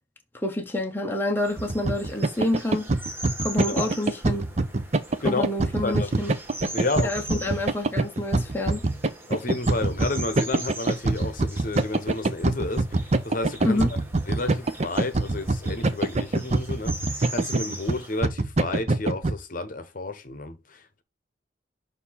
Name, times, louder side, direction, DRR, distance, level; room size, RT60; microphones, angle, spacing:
voice 1, 0.4-2.9 3.4-4.5 5.2-6.3 7.0-8.8 13.6-13.9, left 1 dB, 10° left, 0.8 m, -27 dB
sound 1, 1.4-18.2, right 1 dB, 10° right, 1.2 m, -41 dB
sound 2, 1.6-19.3, right 2 dB, 40° right, 0.6 m, -25 dB
voice 2, 3.6-3.9 5.2-5.4 5.8-6.1 6.7-7.2 9.3-13.8 14.3-21.0, left 2 dB, 50° left, 0.9 m, -31 dB
6.5 x 2.7 x 5.6 m
head